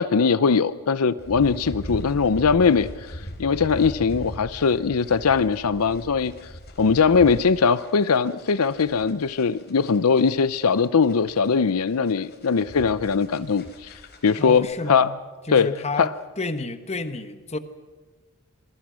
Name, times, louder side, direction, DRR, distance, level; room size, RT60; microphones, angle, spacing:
voice 1, 0.0-6.3 6.8-13.9 14.2-15.1 15.5-15.7 16.0-16.1, left 5 dB, 80° left, 15 dB, 0.6 m, -21 dB
sound 1, 1.2-14.6, equal, 50° left, 4.5 m, -40 dB
voice 2, 14.4-15.1 15.5-17.6, left 3 dB, 30° left, 10 dB, 1.3 m, -30 dB
27.0 x 21.5 x 6.3 m, 1.3 s
head